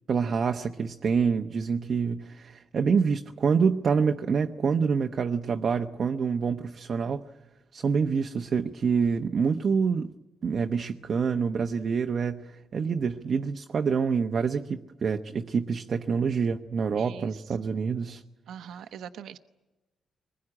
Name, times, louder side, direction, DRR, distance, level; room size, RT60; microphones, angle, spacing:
voice 1, 0.1-7.2 7.7-10.1 10.4-18.2, right 5 dB, 45° right, 6 dB, 0.9 m, -26 dB
voice 2, 16.9-17.6 18.5-19.4, right 8 dB, 75° right, 9 dB, 1.0 m, -43 dB
23.5 x 21.0 x 9.8 m, 1.1 s
cardioid pair, 120°, 0 cm